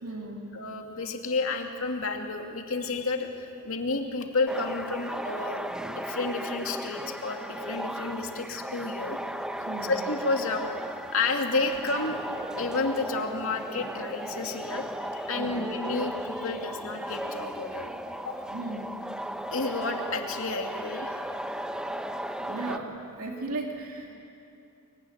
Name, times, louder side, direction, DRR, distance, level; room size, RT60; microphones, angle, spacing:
voice 1, 0.0-0.4 9.7-10.0 15.4-15.6 18.5-19.0 22.4-24.1, right 2 dB, 75° right, 0 dB, 2.5 m, -36 dB
voice 2, 0.5-9.2 9.9-10.7 11.1-12.2 12.6-17.9 18.3-18.4 19.5-21.2, left 3 dB, 65° left, 3 dB, 2.6 m, -31 dB
sound 1, 4.5-22.8, equal, 5° right, 0.8 m, -36 dB
24.5 x 23.5 x 9.9 m, 2.7 s
head